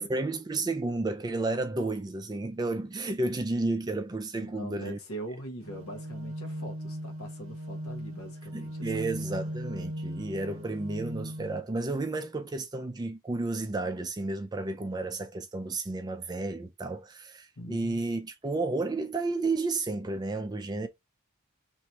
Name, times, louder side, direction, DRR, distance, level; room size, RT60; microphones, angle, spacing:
voice 1, 0.0-5.0 8.5-20.9, right 2 dB, 20° right, 0.4 m, -32 dB
voice 2, 4.4-9.1 17.6-18.0, right 1 dB, 85° left, 1.2 m, -42 dB
sound 1, 5.6-11.6, equal, 65° right, 0.7 m, -38 dB
3.0 x 2.8 x 4.4 m
head